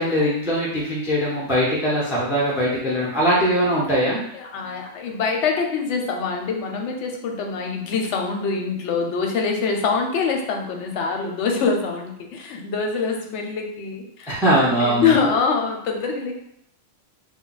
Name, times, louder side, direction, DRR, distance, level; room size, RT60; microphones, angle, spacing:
voice 1, 0.0-4.2 14.3-15.1, equal, 5° right, -5 dB, 0.3 m, -21 dB
voice 2, 4.3-14.3 14.6-16.3, left 5 dB, 70° left, 2 dB, 0.8 m, -24 dB
2.3 x 2.2 x 3.9 m, 0.74 s
omnidirectional pair, 1.4 m